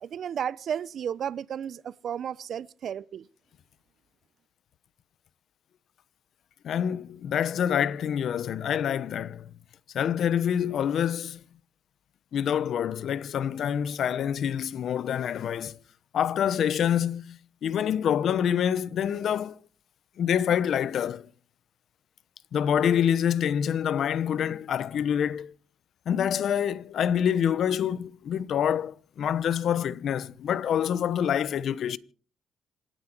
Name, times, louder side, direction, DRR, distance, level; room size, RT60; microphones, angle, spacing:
voice 1, 0.0-3.3, right 8 dB, 65° right, 0.7 m, -33 dB
voice 2, 6.6-9.5 9.9-11.4 12.3-15.8 16.1-19.6 20.2-21.3 22.5-25.5 26.1-32.0, left 9 dB, 65° left, 1.0 m, -26 dB
27.0 x 10.0 x 4.6 m
cardioid pair, 75°, 0 cm